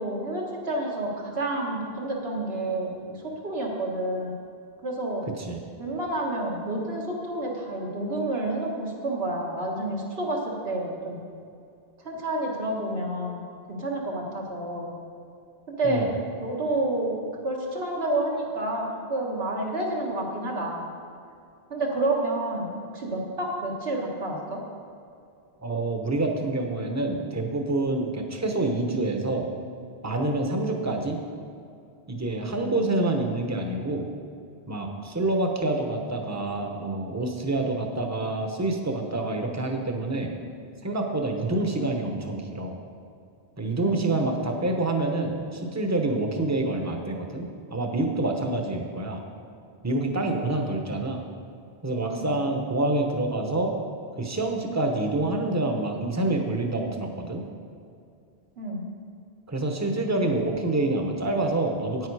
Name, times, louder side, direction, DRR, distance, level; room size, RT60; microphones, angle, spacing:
voice 1, 0.0-4.3 4.8-5.3 5.8-11.2 12.0-13.4 13.7-14.9 15.7-16.1 16.4-17.1 17.4-20.8 21.7-24.6 32.6-33.1 43.8-44.3 52.1-52.4 58.6-58.8, right 2 dB, 80° right, -2 dB, 1.9 m, -29 dB
voice 2, 5.3-5.6 15.8-16.1 25.6-29.5 30.0-31.2 32.1-34.1 34.7-40.3 40.8-42.7 43.6-49.2 49.8-51.2 51.8-53.7 54.2-57.4 59.5-62.1, right 2 dB, 15° right, 3 dB, 0.9 m, -27 dB
9.4 x 9.3 x 4.8 m, 2.5 s
omnidirectional pair, 1.0 m